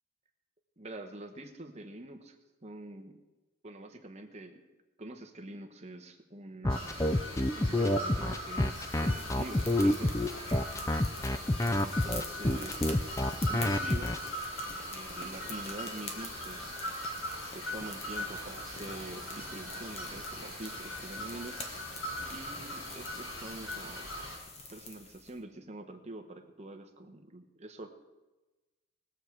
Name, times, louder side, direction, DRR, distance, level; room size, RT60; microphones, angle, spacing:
voice 1, 0.8-2.4 2.6-3.2 3.6-4.6 5.0-7.0 7.5-10.1 11.6-12.8 13.5-14.2 14.7-16.8 17.3-21.8 22.3-24.1 24.7-27.9, right 2 dB, 30° right, 5 dB, 1.1 m, -45 dB
sound 1, 6.6-14.2, left 1 dB, 15° left, 0.4 m, -28 dB
sound 2, 6.7-24.4, left 1 dB, 70° left, 3.7 m, -40 dB
sound 3, 8.5-25.3, left 3 dB, 30° left, 1.2 m, -46 dB
21.0 x 7.3 x 4.7 m, 1.1 s
head